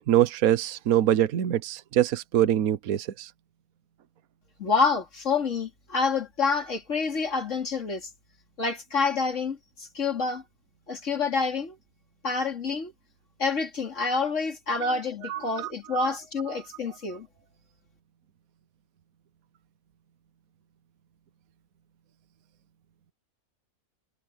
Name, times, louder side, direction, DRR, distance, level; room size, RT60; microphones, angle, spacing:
voice 1, 0.1-3.3 14.8-15.0 15.3-16.1, right 11 dB, 70° right, 1.3 m, -24 dB
voice 2, 4.6-8.1 8.6-10.4 10.9-11.7 12.2-12.9 13.4-17.3, left 4 dB, 55° left, 3.1 m, -28 dB
omnidirectional pair, 1.6 m